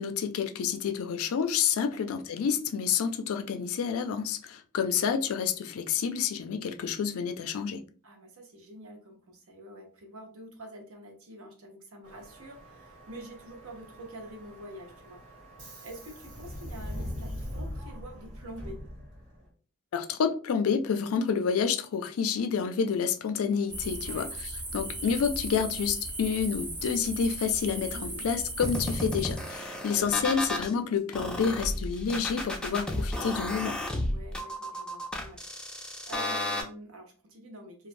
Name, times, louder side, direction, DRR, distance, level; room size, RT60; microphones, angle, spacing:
voice 1, 0.0-7.8 19.9-24.3 24.7-33.8, left 6 dB, 70° left, 0.4 m, -29 dB
voice 2, 8.0-15.2 15.8-18.8 24.0-24.3 27.9-28.3 34.0-35.4 35.7-37.9, right 1 dB, 70° right, 0.8 m, -46 dB
Subway metro underground, 12.0-19.5, equal, 85° right, 1.4 m, -42 dB
sound 1, 23.7-29.6, right 1 dB, 20° right, 0.8 m, -37 dB
sound 2, 28.6-30.7 31.1-36.6, left 1 dB, 5° left, 0.4 m, -33 dB
3.1 x 2.3 x 2.5 m
head